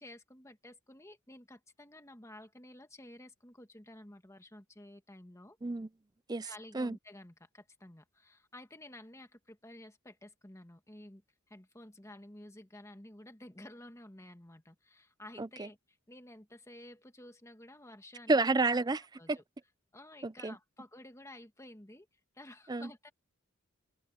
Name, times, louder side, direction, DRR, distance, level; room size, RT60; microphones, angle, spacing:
voice 1, 0.0-5.6 6.4-18.4 19.2-19.4 19.9-22.1 22.3-23.1, left 1 dB, 15° left, 1.6 m, -52 dB
voice 2, 18.3-19.0 19.3-19.4 20.2-20.5 22.7-22.9, right 3 dB, 20° right, 0.5 m, -30 dB
head